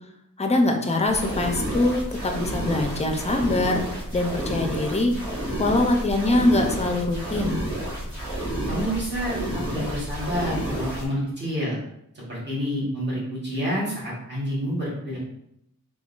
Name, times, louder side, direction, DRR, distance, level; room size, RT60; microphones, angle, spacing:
voice 1, 0.4-3.8 4.1-5.1 5.6-7.6, left 2 dB, 20° left, 3 dB, 0.4 m, -23 dB
sound 1, 1.1-11.1, right 1 dB, 50° right, 1.3 m, -30 dB
voice 2, 8.7-11.8 12.3-15.2, equal, 30° right, -7 dB, 1.1 m, -28 dB
3.5 x 2.2 x 2.4 m, 0.77 s
wide cardioid pair, 85°, 36 cm